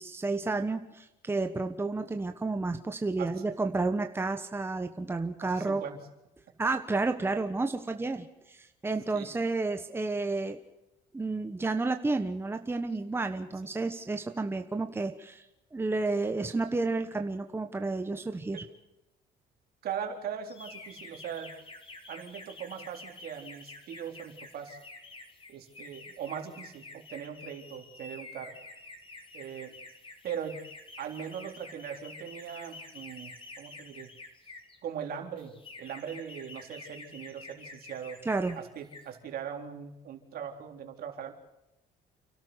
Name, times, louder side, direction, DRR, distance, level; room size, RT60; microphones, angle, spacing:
voice 1, 0.0-5.8 6.6-10.6 11.1-15.4 15.7-18.6 38.2-38.6, right 3 dB, 15° right, 6 dB, 1.3 m, -31 dB
voice 2, 5.4-6.0 9.1-9.3 18.5-18.6 19.8-21.5 22.1-24.8 25.5-28.5 29.3-29.7 30.2-30.6 31.0-34.1 34.8-38.2 38.6-41.3, right 8 dB, 65° right, 3 dB, 3.9 m, -40 dB
sound 1, 20.5-34.8 35.4-38.6 38.8-39.1, left 3 dB, 30° left, 3.9 m, -48 dB
29.0 x 12.5 x 8.1 m, 0.94 s
cardioid pair, 110°, 17 cm